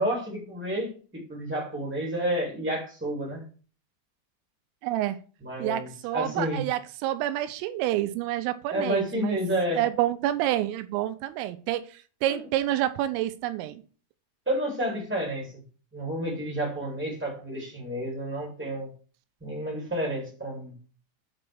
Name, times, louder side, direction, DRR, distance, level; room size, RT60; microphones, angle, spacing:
voice 1, 0.0-3.4 5.4-6.6 8.7-9.8 12.3-12.4 14.4-15.6 15.9-18.9 19.4-20.7, equal, 10° right, 0.5 m, -30 dB
voice 2, 4.8-5.2 5.6-9.4 9.7-11.9 12.2-13.8, right 13 dB, 85° right, 3.2 m, -28 dB
8.7 x 3.2 x 6.2 m
omnidirectional pair, 6.0 m